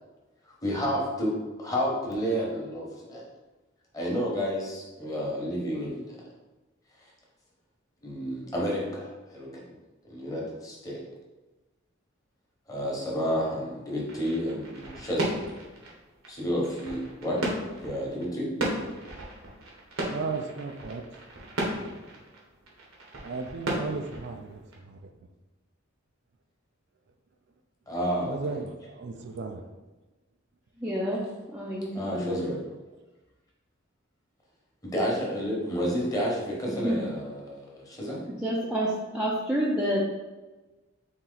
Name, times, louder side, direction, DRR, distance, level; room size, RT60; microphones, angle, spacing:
voice 1, 0.6-3.2 3.9-6.3 8.0-9.6 10.0-11.0 12.7-15.4 16.3-17.4 17.8-18.5 27.9-28.6 31.9-32.6 34.8-38.2, equal, 15° left, -4 dB, 1.1 m, -30 dB
sound 1, 14.1-24.7, right 1 dB, 75° right, 1.1 m, -35 dB
voice 2, 20.1-21.0 23.2-25.1 28.3-29.7, right 4 dB, 60° right, 5 dB, 0.4 m, -35 dB
voice 3, 30.8-31.2 31.5-32.4 36.8-37.0 38.4-40.0, equal, 5° right, -6 dB, 0.5 m, -28 dB
4.3 x 2.9 x 3.9 m, 1.2 s
head